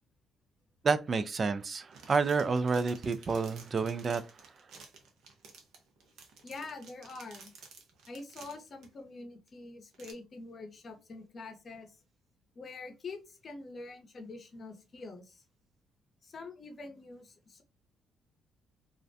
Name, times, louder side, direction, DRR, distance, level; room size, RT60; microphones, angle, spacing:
voice 1, 0.8-4.6, right 4 dB, 40° right, 0.3 m, -30 dB
sound 1, 1.6-8.9 9.5-9.6 9.9-10.1, right 5 dB, 80° right, 0.6 m, -53 dB
voice 2, 6.4-7.5 8.1-12.0 12.5-15.4 16.2-17.6, left 3 dB, 45° left, 0.7 m, -45 dB
2.4 x 2.1 x 2.5 m
cardioid pair, 90°, 0 cm